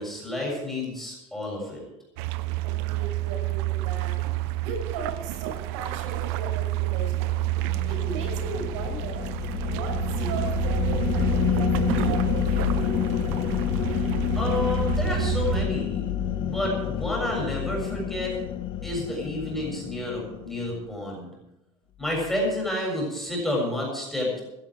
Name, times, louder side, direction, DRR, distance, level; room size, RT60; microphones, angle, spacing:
voice 1, 0.0-1.8 14.4-16.0 16.4-18.3 18.8-21.3 22.0-24.4, left 1 dB, ahead, -3 dB, 7.0 m, -30 dB
sound 1, 2.2-15.7, right 18 dB, 65° right, 0.8 m, -29 dB
voice 2, 2.6-4.2 4.6-7.4 7.8-9.3 9.6-12.8, right 3 dB, 80° right, 3 dB, 5.9 m, -37 dB
sound 2, 6.3-20.8, left 10 dB, 35° left, 0.8 m, -29 dB
16.5 x 14.0 x 4.8 m, 0.91 s
cardioid pair, 155°, 15 cm